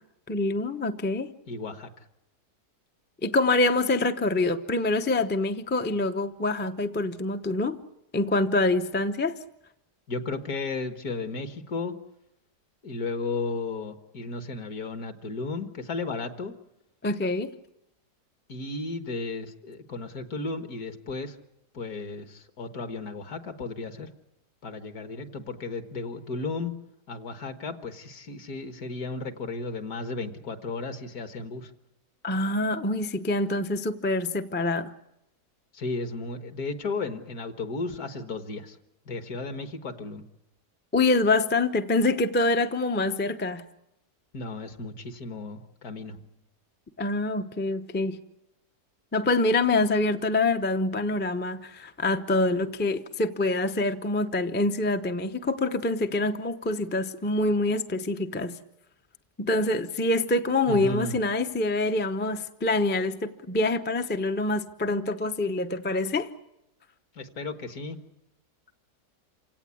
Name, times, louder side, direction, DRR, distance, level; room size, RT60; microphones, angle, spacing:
voice 1, 0.3-1.3 3.2-7.8 8.1-9.3 17.0-17.5 32.2-34.9 40.9-43.6 47.0-48.2 49.1-58.6 59.4-66.3, left 2 dB, 15° left, 0.3 m, -25 dB
voice 2, 1.5-1.9 10.1-11.9 12.8-16.5 18.5-21.4 21.7-24.1 24.6-26.7 27.1-31.7 35.7-38.8 39.1-40.2 44.3-46.2 60.7-61.2 67.2-68.0, left 3 dB, 60° left, 1.9 m, -34 dB
27.5 x 17.0 x 8.4 m
omnidirectional pair, 1.8 m